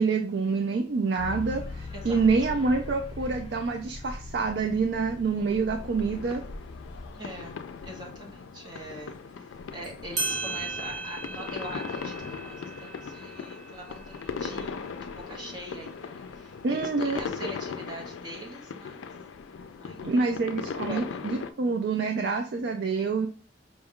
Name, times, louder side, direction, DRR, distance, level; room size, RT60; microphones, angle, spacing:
voice 1, 0.0-6.4 16.6-17.2 20.0-23.3, right 4 dB, 60° right, 5 dB, 0.4 m, -27 dB
sound 1, 1.2-7.1, left 3 dB, 30° left, 0.6 m, -40 dB
voice 2, 1.9-2.5 7.1-7.5 7.8-19.0 19.8-20.3 20.9-21.0, right 1 dB, 25° right, -2 dB, 0.8 m, -43 dB
sound 2, 5.8-21.5, left 5 dB, 90° left, 0.4 m, -38 dB
sound 3, 9.8-9.9 10.2-15.3, right 3 dB, 40° right, 1.1 m, -37 dB
5.2 x 2.3 x 3.6 m, 0.40 s
head